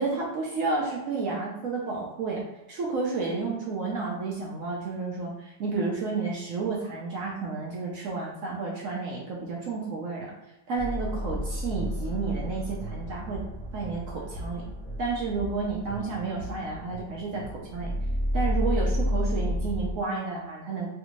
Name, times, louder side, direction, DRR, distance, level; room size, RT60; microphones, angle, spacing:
voice 1, 0.0-10.3 10.7-13.4 13.7-14.6 15.0-17.9 18.3-20.9, right 4 dB, 70° right, -3 dB, 0.8 m, -31 dB
sound 1, 10.8-19.9, equal, 30° left, 1.6 m, -31 dB
3.3 x 2.6 x 2.9 m, 0.95 s
omnidirectional pair, 1.9 m